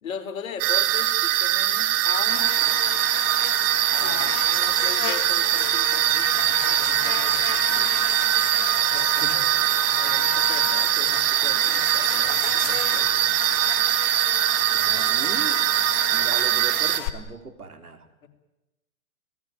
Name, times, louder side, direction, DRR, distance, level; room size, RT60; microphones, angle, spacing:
voice 1, 0.0-2.8 3.9-8.0 8.9-9.7 9.9-13.2 18.2-18.3, left 6 dB, 65° left, 7 dB, 4.0 m, -39 dB
sound 1, 0.6-17.0, right 13 dB, 30° right, 1.9 m, -22 dB
Buzz, 2.3-17.1, left 14 dB, 30° left, 1.6 m, -34 dB
voice 2, 14.7-15.7 16.1-18.3, right 4 dB, 90° right, 8 dB, 3.7 m, -38 dB
29.5 x 18.5 x 9.6 m, 1.0 s
hypercardioid pair, 125°, 43 cm